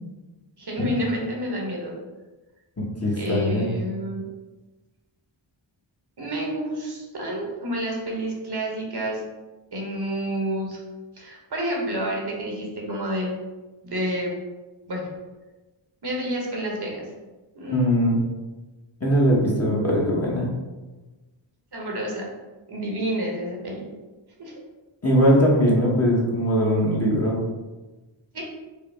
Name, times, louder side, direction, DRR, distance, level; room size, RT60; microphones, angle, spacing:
voice 1, 0.6-2.0 3.2-4.2 6.2-9.2 9.7-10.8 11.1-13.3 13.8-14.4 14.9-15.1 16.0-17.1 17.5-18.1 21.7-22.3 22.7-23.9 24.4-24.5 28.3-28.4, equal, 50° right, -1 dB, 1.0 m, -29 dB
voice 2, 2.8-3.7 17.7-18.2 19.0-20.5 25.0-27.4, equal, 30° left, -4 dB, 1.0 m, -21 dB
4.7 x 2.0 x 3.3 m, 1.2 s
cardioid pair, 40°, 48 cm